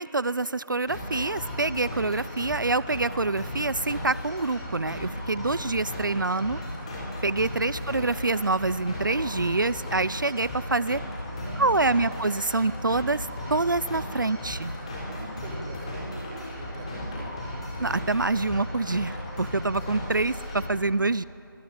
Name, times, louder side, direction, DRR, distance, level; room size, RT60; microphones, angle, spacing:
voice 1, 0.0-6.6 7.2-11.0 11.6-14.7 17.8-21.2, right 3 dB, 60° right, 18 dB, 0.5 m, -26 dB
sound 1, 0.9-20.7, left 1 dB, 15° left, 4.2 m, -35 dB
voice 2, 7.6-7.9 11.3-12.2 15.1-17.4, right 2 dB, 5° right, 1 dB, 1.0 m, -44 dB
24.5 x 22.0 x 8.7 m, 2.8 s
figure-of-eight pair, 175°, 12 cm